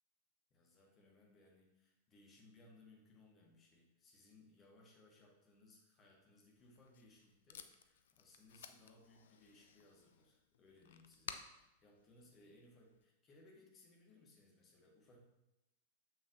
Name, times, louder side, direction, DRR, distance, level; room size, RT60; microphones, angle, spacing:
voice 1, 0.5-15.2, left 2 dB, 25° left, -1 dB, 1.6 m, -65 dB
Packing tape duct tape, 6.6-13.0, left 7 dB, 60° left, 0.4 m, -56 dB
7.0 x 6.3 x 2.7 m, 0.94 s
figure-of-eight pair, 95°, 0 cm